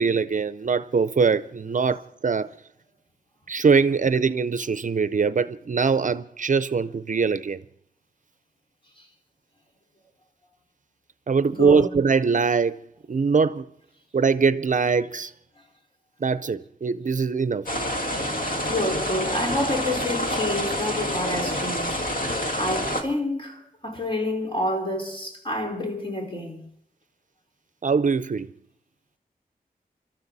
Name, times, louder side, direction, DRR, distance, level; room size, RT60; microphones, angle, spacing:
voice 1, 0.0-2.5 3.5-7.6 11.3-12.8 13.1-13.7 14.1-15.3 16.2-17.7 27.8-28.5, right 5 dB, 55° right, 0.6 m, -22 dB
voice 2, 11.5-11.9 18.6-26.7, left 1 dB, 35° left, 4.9 m, -29 dB
sound 1, 17.7-23.0, equal, 65° left, 2.1 m, -27 dB
25.0 x 13.0 x 4.1 m
wide cardioid pair, 60°, 16 cm